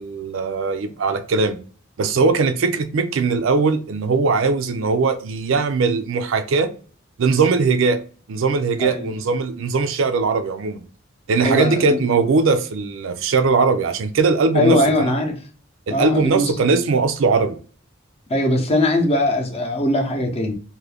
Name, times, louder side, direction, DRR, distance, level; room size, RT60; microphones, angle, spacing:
voice 1, 0.0-1.6 2.0-6.7 7.2-8.0 8.3-10.8 11.3-15.1 15.9-17.6, right 4 dB, 65° right, 0.4 m, -20 dB
voice 2, 8.8-9.1 11.4-12.0 14.5-15.4 15.9-16.6 18.3-20.5, left 1 dB, 30° left, 0.7 m, -20 dB
2.6 x 2.5 x 3.4 m
head